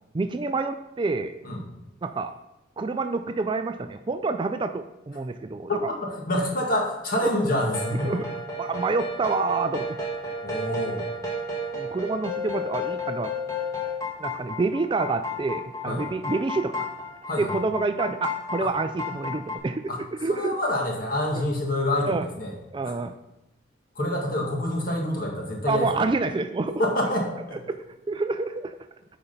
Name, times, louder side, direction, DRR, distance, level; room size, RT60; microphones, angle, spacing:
voice 1, 0.1-1.3 2.0-2.3 2.8-5.9 7.2-7.3 7.9-8.3 8.6-10.0 11.7-13.3 14.2-16.9 17.4-19.9 20.2-20.6 21.3-21.4 22.1-22.3 22.7-23.2 25.7-26.8 27.7-28.8, right 3 dB, 25° right, 9 dB, 0.3 m, -28 dB
voice 2, 5.9-8.2 10.4-11.1 15.9-16.0 17.3-17.5 18.6-18.7 19.9-20.0 20.3-22.5 22.8-22.9 24.0-25.9 26.7-27.6, left 1 dB, 50° left, -1 dB, 1.9 m, -27 dB
sound 1, 7.6-19.6, left 2 dB, 20° left, 1.4 m, -32 dB
8.8 x 5.1 x 5.6 m, 0.92 s
head